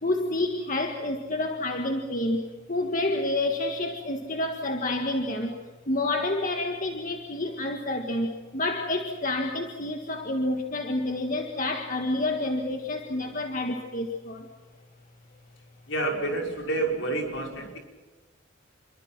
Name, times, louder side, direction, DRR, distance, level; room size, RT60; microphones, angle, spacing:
voice 1, 0.0-2.4 2.7-5.5 5.9-14.4, left 2 dB, 40° left, 3 dB, 1.8 m, -29 dB
voice 2, 15.9-17.8, right 2 dB, 65° left, 1 dB, 5.9 m, -29 dB
28.5 x 23.5 x 6.1 m, 1.3 s
head